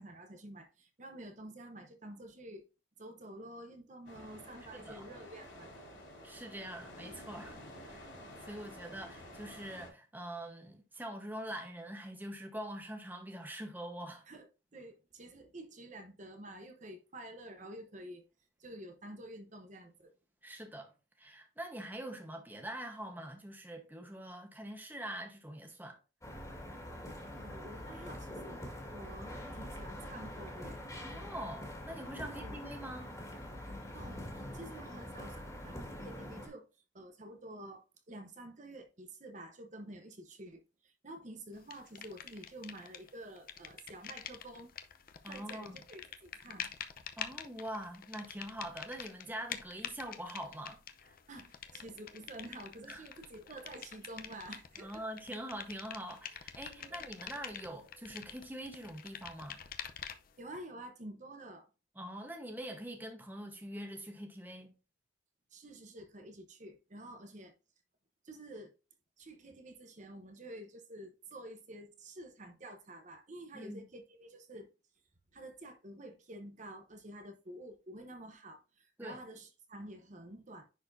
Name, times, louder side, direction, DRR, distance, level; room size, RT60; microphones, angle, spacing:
voice 1, 0.0-2.7 3.0-5.8 14.3-18.2 18.6-20.1 27.3-28.6 28.9-30.8 32.2-32.6 33.9-36.7 36.9-44.7 45.3-46.7 51.3-55.0 56.8-57.1 60.4-61.7 65.5-67.5 68.2-68.7 69.2-74.7 75.3-80.6, right 1 dB, 40° right, 1.0 m, -49 dB
sound 1, 4.1-9.9, left 1 dB, 75° left, 3.8 m, -51 dB
voice 2, 4.7-5.0 6.2-8.1 8.4-14.2 20.4-20.9 21.2-26.0 31.0-33.1 45.2-45.8 47.2-51.2 52.9-53.0 54.8-59.7 61.9-64.7 73.5-73.8 79.0-79.2, right 1 dB, 10° right, 1.1 m, -44 dB
sound 2, 26.2-36.5, left 1 dB, 15° left, 1.9 m, -44 dB
sound 3, 41.7-43.1 43.4-60.4, left 8 dB, 50° left, 0.6 m, -47 dB
10.0 x 4.4 x 2.6 m
head